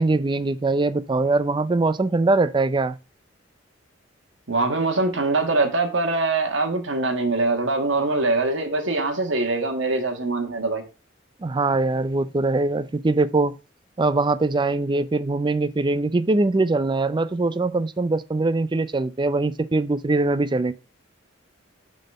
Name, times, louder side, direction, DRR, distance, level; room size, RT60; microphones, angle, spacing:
voice 1, 0.0-3.0 11.4-13.5 14.0-20.7, right 2 dB, 25° right, 0.4 m, -22 dB
voice 2, 4.5-10.8, right 3 dB, 80° right, 1.5 m, -23 dB
6.5 x 4.3 x 5.4 m
head